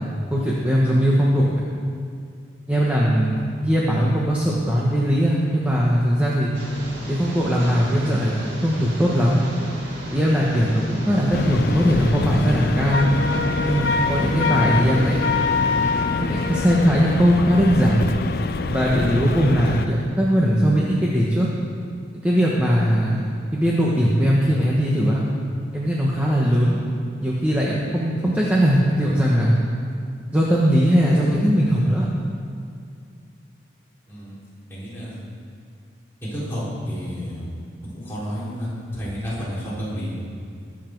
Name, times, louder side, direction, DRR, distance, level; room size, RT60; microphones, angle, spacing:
voice 1, 0.0-1.6 2.7-6.5 7.1-9.4 10.1-13.1 13.7-15.2 16.2-18.0 18.7-21.5 22.2-23.3 23.5-25.2 25.7-26.8 27.2-29.6 30.3-32.1, equal, 10° right, -5 dB, 1.2 m, -20 dB
sound 1, 6.5-16.1, right 1 dB, 70° right, 2.2 m, -37 dB
sound 2, 11.3-19.9, left 3 dB, 50° left, 0.4 m, -26 dB
Wind instrument woodwind instrument, 12.9-16.9, left 4 dB, 80° left, 1.0 m, -25 dB
voice 2, 34.7-35.2 36.2-37.5 37.9-40.2, equal, 10° left, -10 dB, 4.0 m, -30 dB
21.0 x 7.5 x 4.6 m, 2.3 s
head